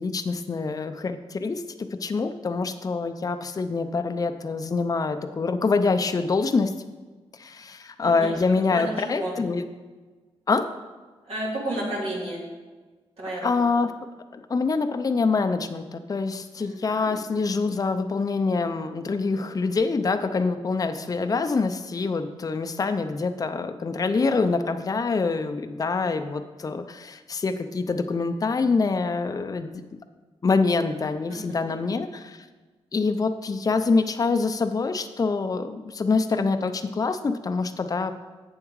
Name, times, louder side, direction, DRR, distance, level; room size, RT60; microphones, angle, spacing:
voice 1, 0.0-6.7 7.4-9.7 10.5-10.7 13.4-13.9 14.3-29.7 30.4-32.4 32.9-38.1, left 4 dB, 35° left, 8 dB, 0.5 m, -25 dB
voice 2, 8.0-8.4 8.7-9.3 11.3-12.4 13.2-13.4 16.6-16.8 17.1-17.2 31.3-31.7, right 1 dB, 75° right, -5 dB, 2.7 m, -32 dB
8.0 x 7.2 x 4.7 m, 1.3 s
cardioid pair, 80°, 10 cm